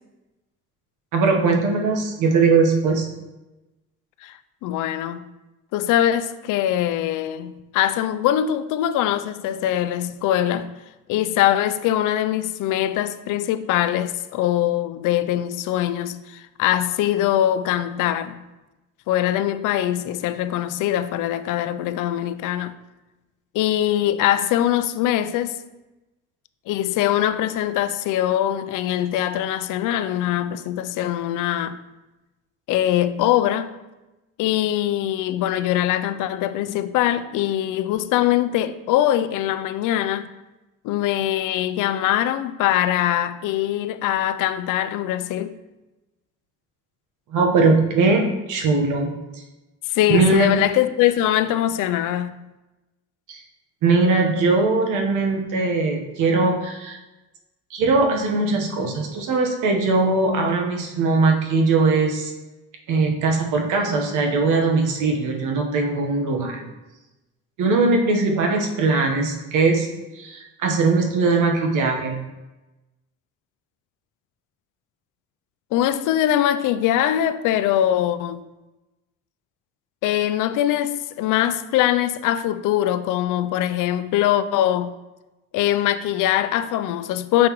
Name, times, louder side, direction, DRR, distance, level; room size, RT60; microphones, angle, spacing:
voice 1, 1.1-3.1 47.3-49.1 50.1-50.5 53.3-53.4 53.8-57.0 57.7-62.3 62.9-66.7 67.6-69.9 70.1-72.2, right 3 dB, 75° right, 1.2 m, -20 dB
voice 2, 4.2-5.2 5.7-10.8 11.1-18.4 19.1-22.7 23.5-25.6 26.7-31.8 32.7-33.8 34.4-40.3 40.8-45.6 49.9-52.5 75.7-78.4 80.0-84.9 85.5-87.5, left 12 dB, 75° left, 0.5 m, -22 dB
6.2 x 5.7 x 3.1 m
cardioid pair, 105°, 31 cm